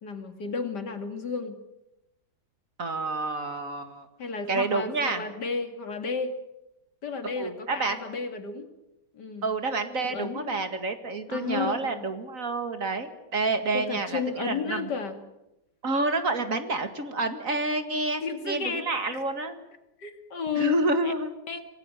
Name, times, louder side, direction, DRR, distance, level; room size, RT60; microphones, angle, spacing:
voice 1, 0.0-1.6 4.2-6.4 7.0-8.7 9.1-9.5 10.0-10.6 11.3-12.0 13.7-15.2 18.2-18.9 19.1-19.2 20.0-21.1 21.5-21.6, left 5 dB, 70° left, 7 dB, 2.8 m, -32 dB
voice 2, 2.8-4.1 4.5-5.2 7.2-8.0 9.4-14.9 15.8-19.6 20.6-21.3, right 3 dB, 50° right, 8 dB, 2.2 m, -29 dB
26.0 x 18.0 x 8.9 m, 0.93 s
omnidirectional pair, 1.9 m